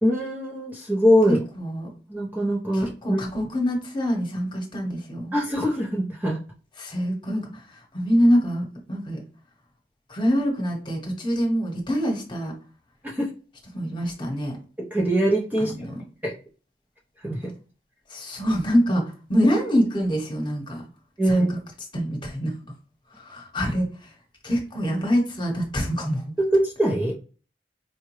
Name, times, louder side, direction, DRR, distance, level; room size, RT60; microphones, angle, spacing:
voice 1, 0.0-1.4 2.1-3.2 5.3-6.4 13.0-13.3 14.8-15.7 16.2-16.3 17.2-17.5 21.2-21.6 26.5-27.2, equal, 10° right, -3 dB, 0.5 m, -22 dB
voice 2, 1.3-1.9 2.7-5.3 6.8-9.2 10.1-12.5 13.7-14.6 15.7-16.0 18.1-19.0 19.3-20.8 21.3-21.6 21.9-22.5 23.2-23.9 24.4-26.2, equal, 25° left, 0 dB, 1.1 m, -25 dB
4.6 x 2.2 x 3.0 m, 0.38 s
head